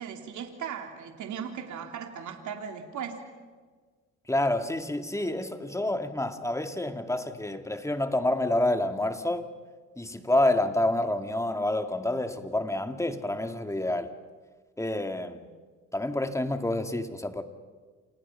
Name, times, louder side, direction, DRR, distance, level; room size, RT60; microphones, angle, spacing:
voice 1, 0.0-3.2, right 7 dB, 75° right, 3.1 m, -37 dB
voice 2, 4.3-9.5 10.0-14.1 14.8-15.5 15.9-17.4, left 1 dB, 10° left, 2.2 m, -28 dB
29.5 x 27.5 x 5.8 m
cardioid pair, 90°, 30 cm